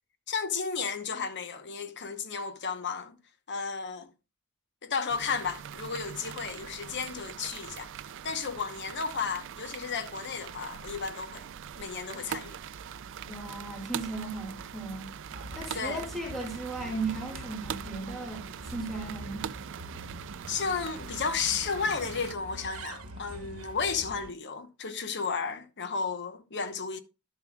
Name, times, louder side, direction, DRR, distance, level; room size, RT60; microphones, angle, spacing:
voice 1, 0.3-3.2 3.5-4.1 4.8-7.9 8.2-11.5 11.8-12.6 15.7-16.0 20.5-27.0, left 5 dB, 55° left, 1.0 m, -33 dB
sound 1, 5.1-22.3, right 8 dB, 60° right, 0.4 m, -42 dB
voice 2, 13.3-15.1 15.6-19.5, right 3 dB, ahead, 2.2 m, -36 dB
Bird, 15.3-24.3, right 1 dB, 80° right, 1.1 m, -45 dB
12.0 x 7.1 x 2.3 m
head